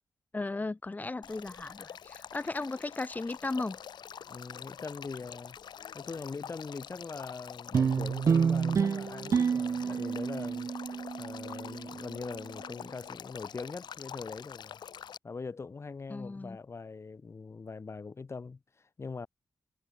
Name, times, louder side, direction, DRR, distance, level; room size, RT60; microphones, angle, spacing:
voice 1, 0.3-3.8 16.1-16.6, left 3 dB, 20° left, 1.8 m, -36 dB
Male speech man speaking / Stream / Trickle dribble, 1.2-15.2, left 8 dB, 85° left, 2.3 m, -46 dB
voice 2, 4.3-5.6 5.9-10.7 11.2-14.8 15.2-19.3, left 4 dB, 35° left, 4.6 m, -42 dB
sound 1, 7.7-12.4, right 6 dB, 45° right, 0.4 m, -29 dB
wide cardioid pair, 125°, 7 cm